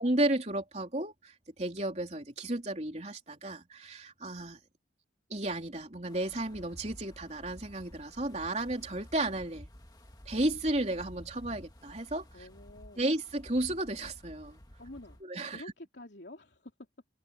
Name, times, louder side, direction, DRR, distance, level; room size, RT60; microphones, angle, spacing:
voice 1, 0.0-4.6 5.3-9.7 10.3-12.2 13.0-14.6 15.2-15.6, right 1 dB, 35° right, 3.7 m, -33 dB
Wind, 6.1-15.2, equal, 20° left, 1.8 m, -52 dB
voice 2, 12.3-13.0 14.8-16.7, left 1 dB, 65° left, 3.3 m, -49 dB
head